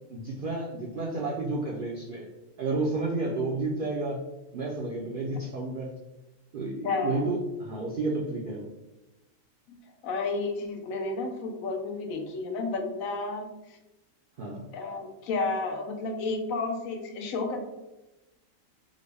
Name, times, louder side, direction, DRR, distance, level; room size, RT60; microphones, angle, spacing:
voice 1, 0.1-2.3 2.6-4.2 4.5-5.9 6.5-8.7 14.4-14.7, right 2 dB, 70° right, -4 dB, 0.5 m, -31 dB
voice 2, 6.8-7.3 9.7-9.8 10.0-13.8 14.7-17.6, left 3 dB, 80° left, 3 dB, 1.0 m, -31 dB
3.7 x 2.0 x 3.3 m, 0.99 s
omnidirectional pair, 1.4 m